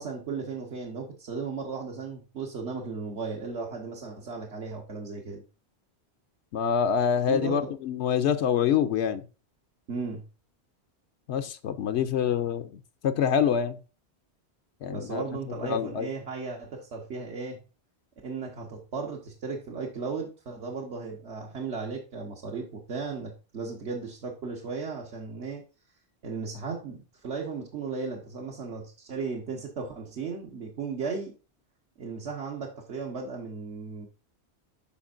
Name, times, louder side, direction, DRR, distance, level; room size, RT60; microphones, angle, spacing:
voice 1, 0.0-5.4 7.3-7.7 9.9-10.2 14.9-17.6 18.2-25.6 26.2-31.3 32.0-34.1, right 4 dB, 80° right, -1 dB, 1.5 m, -35 dB
voice 2, 6.5-9.2 11.3-13.8 14.8-15.2 15.6-16.1, left 8 dB, 85° left, 10 dB, 0.9 m, -26 dB
13.0 x 4.3 x 2.5 m, 0.32 s
omnidirectional pair, 1.1 m